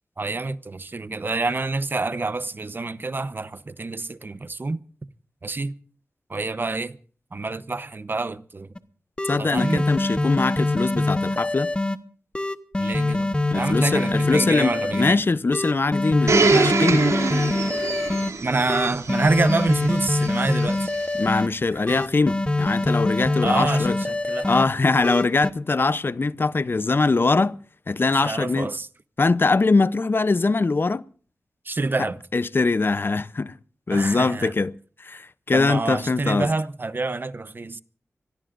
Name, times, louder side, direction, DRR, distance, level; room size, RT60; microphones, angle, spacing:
voice 1, 0.2-4.8 5.4-5.7 6.3-7.0 7.3-8.7 9.4-9.8 12.8-15.2 18.4-20.9 21.9-22.0 23.4-24.6 28.1-28.9 31.6-32.2 33.9-34.5 35.5-37.8, right 3 dB, 40° right, 0.8 m, -27 dB
sound 1, 8.8-8.9 9.2-12.0 12.3-15.1 15.5-18.3 18.7-21.5 21.9-24.6 25.0-25.5, left 2 dB, 20° left, 1.1 m, -24 dB
voice 2, 9.2-11.7 13.5-17.1 21.1-24.0 24.4-27.6 27.9-28.7 29.2-31.0 32.3-33.5 33.9-34.7 35.0-36.5, left 3 dB, 45° left, 0.6 m, -22 dB
Domestic sounds home sounds, 16.3-21.1 21.9-22.0, right 4 dB, 75° right, 2.8 m, -25 dB
25.5 x 18.5 x 2.5 m
wide cardioid pair, 70°, 5 cm